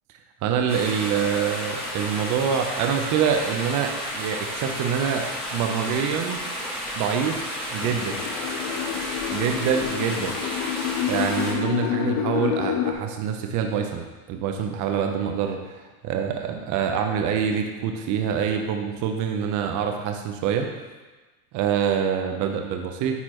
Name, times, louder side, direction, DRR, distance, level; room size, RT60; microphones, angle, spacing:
voice 1, 0.4-6.4 6.9-7.4 7.7-8.2 9.3-10.4 11.0-14.0 14.3-20.7 21.5-23.2, right 7 dB, 45° right, 4 dB, 0.8 m, -25 dB
sound 1, 0.7-11.5, equal, ahead, 1.8 m, -32 dB
sound 2, 7.8-12.9, left 9 dB, 45° left, 0.6 m, -28 dB
9.5 x 4.3 x 3.0 m, 1.2 s
supercardioid pair, 120°, 44 cm